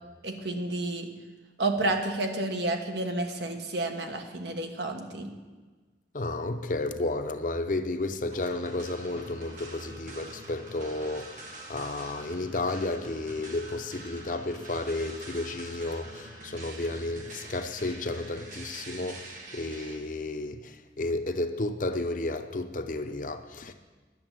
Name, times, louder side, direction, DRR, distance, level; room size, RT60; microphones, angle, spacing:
voice 1, 0.2-1.1 1.6-5.3, right 2 dB, 75° right, 1.3 m, -30 dB
voice 2, 6.1-23.7, left 2 dB, 45° left, 0.7 m, -32 dB
sound 1, 8.3-20.0, right 2 dB, 45° right, 1.5 m, -45 dB
11.0 x 7.1 x 9.0 m
head